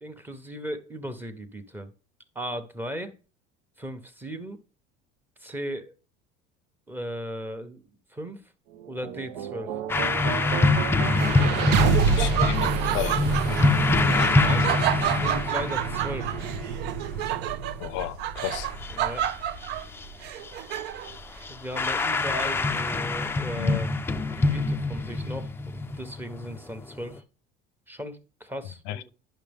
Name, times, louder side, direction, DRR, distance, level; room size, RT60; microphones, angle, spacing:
voice 1, 0.0-1.9 2.3-3.2 3.8-4.6 5.4-5.9 6.9-7.8 8.1-8.5 8.9-9.8 14.3-16.4 18.9-19.3 21.5-23.9 24.4-27.2 27.9-29.1, equal, 10° right, 0.9 m, -37 dB
sound 1, 8.7-20.8, right 5 dB, 90° right, 1.0 m, -30 dB
sound 2, 9.9-17.2 17.9-18.0 18.4-20.1 20.4-20.8 21.0-27.2, left 3 dB, 10° left, 0.4 m, -25 dB
Laughter, 11.2-21.2, right 12 dB, 55° right, 0.5 m, -31 dB
voice 2, 12.1-13.2 17.8-18.7 23.6-23.8 28.9-29.1, left 14 dB, 65° left, 0.5 m, -32 dB
10.0 x 6.1 x 3.5 m
cardioid pair, 150°, 21 cm